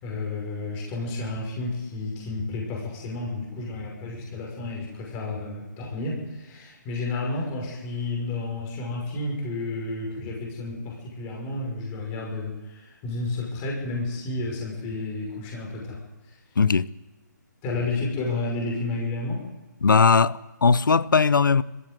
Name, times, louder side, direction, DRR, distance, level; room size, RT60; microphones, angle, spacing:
voice 1, 0.0-16.0 16.3-16.4 17.6-19.4, left 2 dB, 25° left, 6.0 m, -31 dB
voice 2, 16.6-16.9 19.8-21.6, left 5 dB, 80° left, 0.7 m, -19 dB
21.5 x 15.5 x 7.9 m
hypercardioid pair, 150°, 10 cm